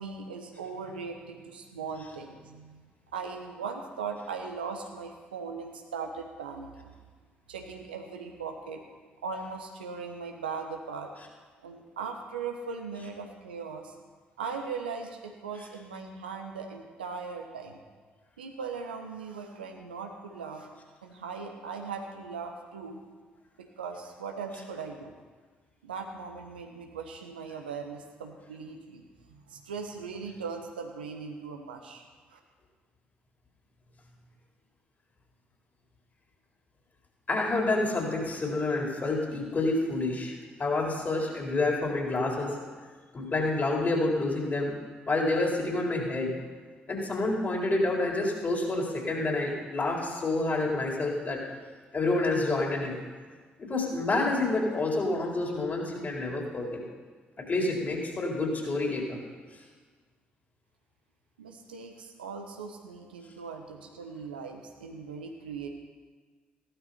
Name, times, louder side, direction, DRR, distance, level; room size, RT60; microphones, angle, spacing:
voice 1, 0.0-2.9 3.1-6.9 7.5-8.8 9.2-11.1 11.6-13.9 14.4-17.8 18.4-20.7 21.0-23.0 23.6-25.1 25.8-32.4 61.4-65.7, right 5 dB, 80° right, 3 dB, 1.2 m, -39 dB
voice 2, 37.3-40.3 40.6-42.5 43.1-44.8 45.1-46.3 46.9-51.4 51.9-52.9 53.6-56.8 57.4-59.2, left 2 dB, 35° left, -1 dB, 4.2 m, -28 dB
15.5 x 12.5 x 4.4 m, 1.5 s
figure-of-eight pair, 45°, 5 cm